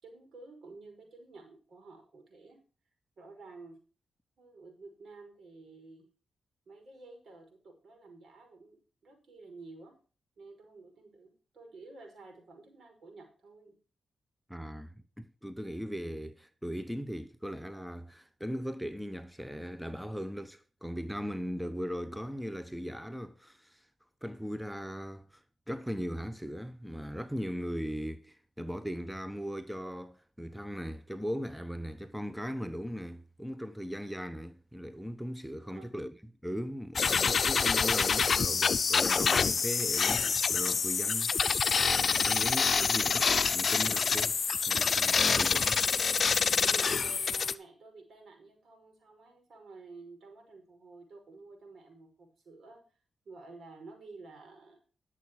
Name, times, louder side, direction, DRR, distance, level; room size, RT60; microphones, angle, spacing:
voice 1, 0.0-2.6 3.2-3.8 4.4-6.1 6.7-10.0 10.4-13.8 35.5-35.9 42.7-42.9 46.7-52.8 53.3-54.8, right 3 dB, 65° right, 5.5 m, -51 dB
voice 2, 14.5-23.9 24.2-36.2 36.4-41.7 42.0-43.2 43.5-44.4 44.7-45.9, equal, ahead, 0.9 m, -38 dB
sound 1, 37.0-47.5, left 5 dB, 60° left, 0.6 m, -27 dB
11.0 x 7.4 x 4.8 m
supercardioid pair, 45°, 0 cm